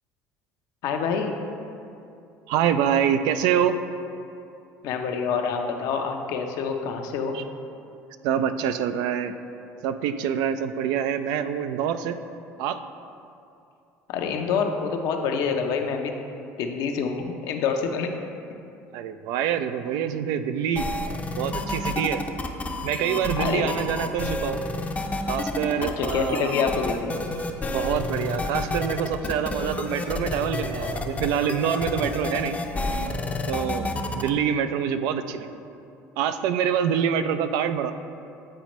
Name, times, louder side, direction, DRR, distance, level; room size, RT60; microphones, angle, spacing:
voice 1, 0.8-1.4 4.8-7.4 14.1-16.1 16.6-18.1 23.4-23.6 25.8-27.2, left 6 dB, 70° left, 4 dB, 0.6 m, -26 dB
voice 2, 2.5-3.8 7.3-7.4 8.2-9.3 9.8-12.2 12.6-12.8 18.9-20.9 21.4-22.2 22.8-24.6 25.3-26.5 27.7-32.6 33.5-35.5 36.2-37.9, right 8 dB, 75° right, 10 dB, 0.3 m, -25 dB
sound 1, 20.8-34.3, left 2 dB, 20° left, 0.5 m, -30 dB
8.7 x 4.1 x 3.0 m, 2.6 s
supercardioid pair, 95°, 7 cm